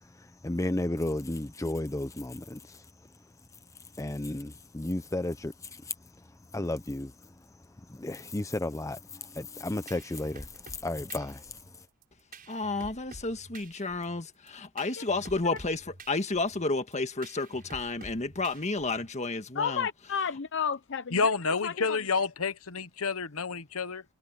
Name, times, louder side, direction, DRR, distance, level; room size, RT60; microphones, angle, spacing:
voice 1, 0.4-2.8 4.0-5.9 6.5-7.1 7.9-11.5, left 1 dB, 15° left, 0.6 m, -33 dB
sound 1, 9.9-19.2, right 2 dB, 40° right, 7.3 m, -50 dB
voice 2, 12.5-19.9, left 3 dB, 30° left, 1.6 m, -31 dB
voice 3, 19.5-21.3 21.6-22.1, left 7 dB, 55° left, 0.7 m, -32 dB
voice 4, 21.1-24.0, left 4 dB, 75° left, 1.2 m, -29 dB
head